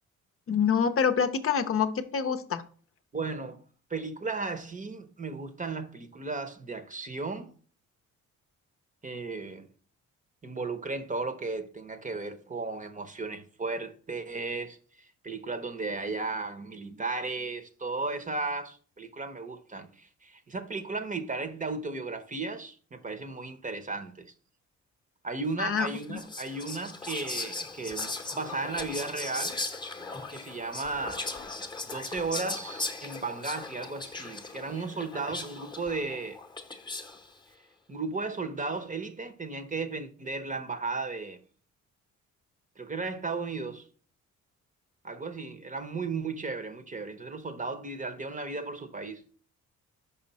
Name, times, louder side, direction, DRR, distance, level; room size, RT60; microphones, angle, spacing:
voice 1, 0.5-2.6 25.6-26.2, left 7 dB, 45° left, 0.7 m, -26 dB
voice 2, 3.1-3.6 3.9-7.5 9.0-9.7 10.4-24.3 25.2-29.6 30.3-31.3 31.8-36.4 37.9-41.4 42.8-43.9 45.0-49.2, right 3 dB, 25° right, 0.9 m, -35 dB
Whispering, 25.9-37.3, left 3 dB, 15° left, 0.9 m, -38 dB
5.6 x 5.2 x 4.1 m
cardioid pair, 90°, 30 cm